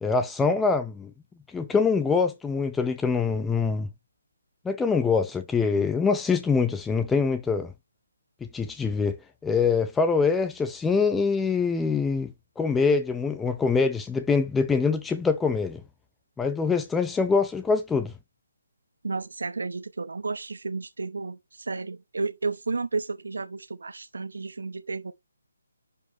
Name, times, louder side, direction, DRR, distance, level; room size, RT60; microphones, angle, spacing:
voice 1, 0.0-1.1 1.5-3.9 4.6-7.7 8.4-9.2 9.4-15.8 16.4-18.1, left 5 dB, 5° left, 0.6 m, -24 dB
voice 2, 19.0-25.1, right 3 dB, 80° right, 0.8 m, -32 dB
11.0 x 5.0 x 2.9 m
hypercardioid pair, 160°, 0 cm